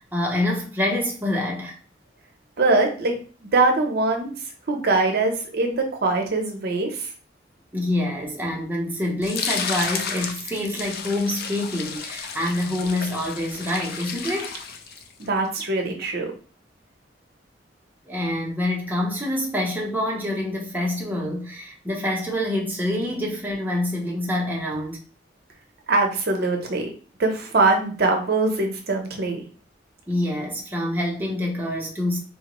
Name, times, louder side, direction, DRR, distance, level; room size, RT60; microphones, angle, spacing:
voice 1, 0.0-1.8 7.7-14.6 18.1-25.0 30.1-32.2, left 1 dB, 10° right, 0.6 m, -26 dB
voice 2, 2.6-7.1 15.2-16.3 25.9-26.9 27.2-29.4, right 3 dB, 55° right, 0.6 m, -22 dB
sound 1, 9.2-15.3, left 6 dB, 55° left, 0.4 m, -32 dB
3.7 x 2.0 x 2.9 m
head